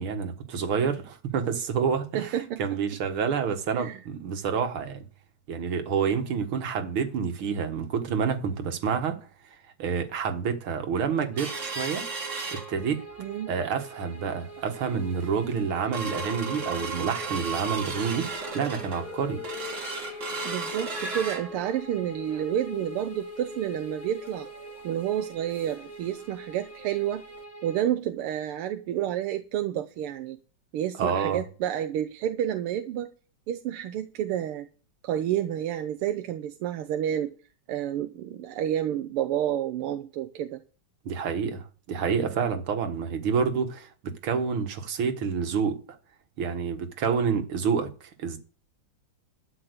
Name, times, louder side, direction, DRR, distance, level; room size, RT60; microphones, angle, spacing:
voice 1, 0.0-5.0 5.5-9.2 9.8-12.1 12.5-13.1 13.5-19.4 31.0-31.4 41.1-45.8 46.4-48.4, right 6 dB, 75° right, 2.3 m, -28 dB
voice 2, 2.1-2.8 3.7-4.0 13.2-13.5 20.4-24.5 24.8-27.2 27.6-30.4 30.7-33.1 33.5-34.7 35.0-37.3 37.7-40.6, right 11 dB, 90° right, 1.7 m, -30 dB
sound 1, 11.3-27.8, right 3 dB, 5° left, 1.6 m, -45 dB
sound 2, 11.4-13.2 13.6-13.7 14.1-14.4 14.9-15.0 15.4-25.9 26.2-26.3 26.7-26.9 27.4-27.5, right 2 dB, 35° right, 1.9 m, -36 dB
12.5 x 5.6 x 8.1 m
omnidirectional pair, 2.4 m